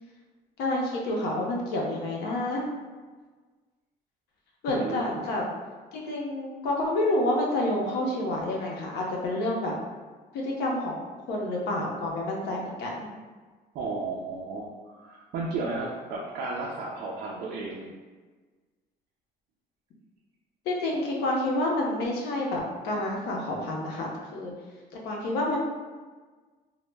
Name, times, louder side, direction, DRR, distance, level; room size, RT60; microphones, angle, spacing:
voice 1, 0.6-2.7 4.6-5.4 5.9-9.7 10.3-11.0 11.3-13.1 20.7-24.5 25.0-25.6, left 1 dB, 75° left, -1 dB, 0.6 m, -28 dB
voice 2, 4.7-5.2 13.7-17.9, right 3 dB, 70° right, -2 dB, 0.4 m, -33 dB
2.0 x 2.0 x 3.2 m, 1.4 s
cardioid pair, 110°, 17 cm